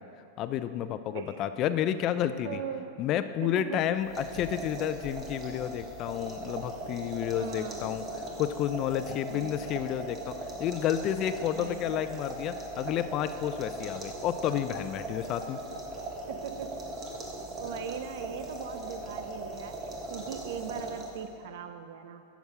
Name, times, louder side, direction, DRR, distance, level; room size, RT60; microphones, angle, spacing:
voice 1, 0.4-2.6 3.0-8.0 8.4-10.3 10.6-15.6, left 10 dB, 40° left, 12 dB, 0.4 m, -30 dB
voice 2, 2.4-3.0 3.4-3.8 7.3-7.8 9.3-9.6 11.6-12.0 16.3-16.8 17.6-22.3, right 8 dB, 70° right, 9 dB, 0.6 m, -40 dB
sound 1, 4.0-21.4, right 2 dB, 30° right, 1.5 m, -39 dB
9.5 x 7.2 x 4.8 m, 2.6 s
supercardioid pair, 125°, 0 cm